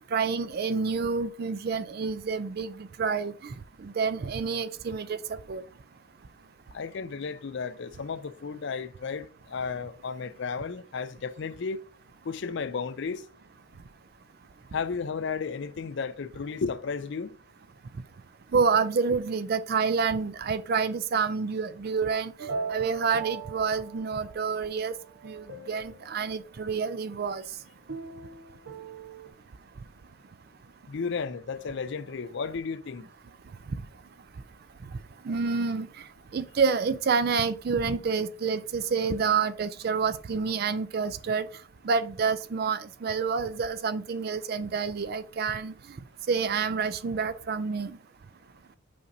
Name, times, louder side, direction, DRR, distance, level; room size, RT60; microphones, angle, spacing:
voice 1, 0.0-3.5 3.8-5.6 18.5-22.3 22.7-24.9 25.2-27.4 35.3-35.9 36.3-41.5 41.8-45.7 46.3-48.0, right 5 dB, 45° right, 0.4 m, -28 dB
voice 2, 6.7-11.8 12.2-13.3 14.7-17.4 30.9-33.1, left 5 dB, 60° left, 0.5 m, -33 dB
sound 1, 22.4-24.6 25.0-26.2 27.9-29.3, right 5 dB, 70° right, 1.0 m, -39 dB
8.5 x 5.2 x 2.7 m
head